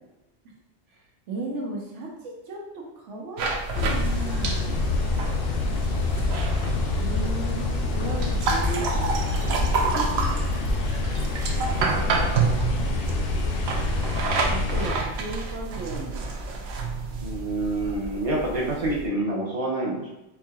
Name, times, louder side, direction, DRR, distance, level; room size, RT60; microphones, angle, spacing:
voice 1, 0.9-5.0 7.0-9.7 14.5-16.3, right 2 dB, 90° right, -1 dB, 1.1 m, -36 dB
sound 1, 3.4-19.1, right 4 dB, 70° right, 0.8 m, -29 dB
sound 2, 3.7-14.9, left 3 dB, 65° left, 0.7 m, -26 dB
voice 2, 17.2-20.2, right 2 dB, 35° right, -3 dB, 0.8 m, -27 dB
4.6 x 2.8 x 2.3 m, 0.96 s
omnidirectional pair, 1.2 m